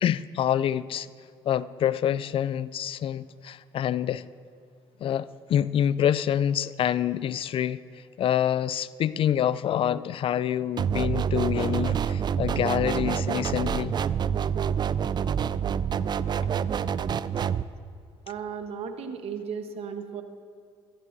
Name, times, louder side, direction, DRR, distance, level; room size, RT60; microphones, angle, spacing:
voice 1, 0.0-1.1 1.5-4.2 5.0-7.8 8.2-14.0, left 10 dB, 50° left, 0.4 m, -26 dB
sound 1, 10.8-17.6, right 8 dB, 40° right, 0.4 m, -27 dB
voice 2, 18.3-20.2, right 6 dB, 60° right, 1.2 m, -35 dB
16.0 x 14.0 x 2.7 m
supercardioid pair, 65°, 12 cm